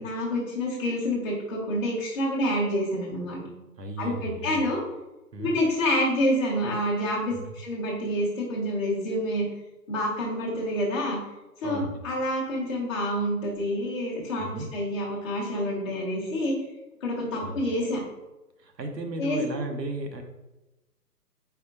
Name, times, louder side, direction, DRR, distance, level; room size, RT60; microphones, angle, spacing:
voice 1, 0.0-3.4 4.0-4.8 5.4-9.5 9.9-11.2 11.6-16.5 17.0-18.0 19.2-19.4, equal, 20° left, -7 dB, 0.8 m, -27 dB
voice 2, 3.8-4.6 5.3-5.5 7.3-7.5 11.6-12.0 14.4-14.7 17.3-17.6 18.6-20.2, right 2 dB, 80° right, 5 dB, 0.9 m, -35 dB
4.2 x 4.1 x 2.8 m, 1.0 s
figure-of-eight pair, 135°, 49 cm